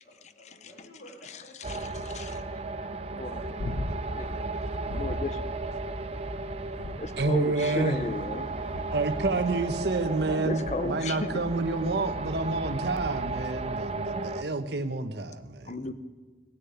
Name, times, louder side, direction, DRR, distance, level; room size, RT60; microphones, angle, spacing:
voice 1, 0.0-2.6 3.5-3.9 7.5-10.6, equal, 70° left, -8 dB, 3.5 m, -49 dB
sound 1, 1.6-14.4, right 3 dB, 35° right, 0.6 m, -34 dB
sound 2, 3.6-4.2 4.9-5.4 6.7-7.5 8.7-9.2 10.6-11.1 13.4-13.5, left 1 dB, 90° left, 0.9 m, -37 dB
voice 2, 4.1-4.5 4.9-5.5 7.0-8.5 10.3-11.4 15.7-15.9, left 2 dB, 40° left, 12 dB, 0.7 m, -35 dB
voice 3, 7.2-8.0 8.9-15.9, right 2 dB, 70° right, 9 dB, 1.0 m, -29 dB
18.0 x 6.8 x 9.2 m, 1.4 s
head